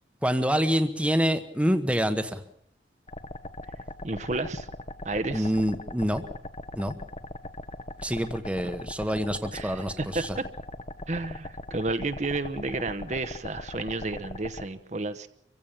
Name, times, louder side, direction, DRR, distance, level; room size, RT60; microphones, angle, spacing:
voice 1, 0.2-2.4 5.3-6.2 6.8-6.9 8.0-10.4, equal, 5° right, 9 dB, 1.1 m, -26 dB
sound 1, 3.1-14.6, left 1 dB, 30° left, 1.0 m, -40 dB
voice 2, 4.0-4.7 5.0-5.5 9.5-10.4 11.1-15.3, right 2 dB, 40° right, 10 dB, 1.0 m, -31 dB
25.5 x 15.5 x 7.3 m, 0.70 s
head